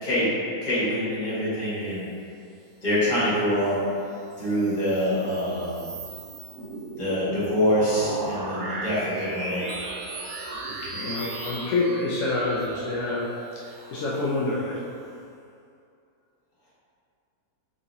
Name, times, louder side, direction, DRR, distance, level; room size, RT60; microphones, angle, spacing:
voice 1, 0.6-2.1 2.8-3.8 4.4-5.9 7.0-9.7, equal, 30° left, -10 dB, 1.3 m, -25 dB
sound 1, 4.1-15.1, right 2 dB, 75° right, 1.0 m, -37 dB
voice 2, 10.8-14.9, left 2 dB, 65° left, -6 dB, 0.8 m, -28 dB
4.0 x 3.6 x 2.7 m, 2.5 s
omnidirectional pair, 1.7 m